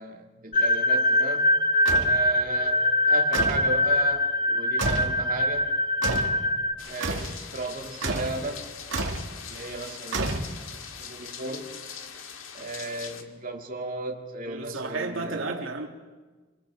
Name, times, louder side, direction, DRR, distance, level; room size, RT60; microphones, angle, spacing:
voice 1, 0.0-1.5 2.1-2.8 3.1-5.7 6.8-8.6 9.4-10.4 11.0-11.7 12.5-15.7, right 2 dB, 45° right, 2.2 m, -35 dB
sound 1, 0.5-6.7, left 1 dB, 40° left, 0.8 m, -23 dB
sound 2, 1.9-2.2 3.3-3.7 4.8-5.2 6.0-6.4 7.0-7.4 8.0-8.4 8.9-9.3 10.1-10.8, right 2 dB, 70° right, 2.4 m, -29 dB
sound 3, 6.8-13.2, left 7 dB, 90° left, 2.0 m, -41 dB
voice 2, 14.5-15.9, right 3 dB, 85° right, 2.5 m, -33 dB
26.5 x 26.5 x 4.8 m
head